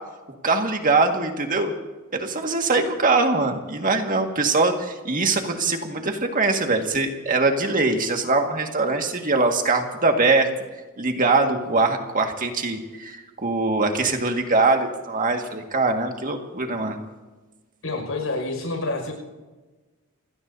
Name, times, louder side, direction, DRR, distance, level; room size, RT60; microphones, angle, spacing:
voice 1, 0.4-1.7 2.1-10.5 11.0-17.0, right 3 dB, 40° right, 4 dB, 1.8 m, -22 dB
voice 2, 17.8-19.1, left 2 dB, 90° left, 2 dB, 5.6 m, -28 dB
28.5 x 17.0 x 2.7 m, 1.2 s
head